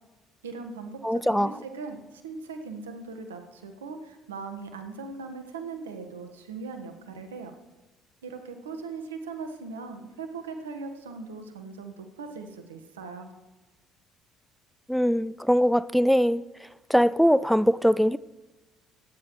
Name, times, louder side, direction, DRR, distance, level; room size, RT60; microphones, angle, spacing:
voice 1, 0.4-7.5 8.2-13.3, right 4 dB, 90° right, 1.3 m, -39 dB
voice 2, 1.0-1.5 14.9-16.4 16.9-18.2, equal, ahead, 0.4 m, -21 dB
23.5 x 9.8 x 3.1 m
hypercardioid pair, 55°, 0 cm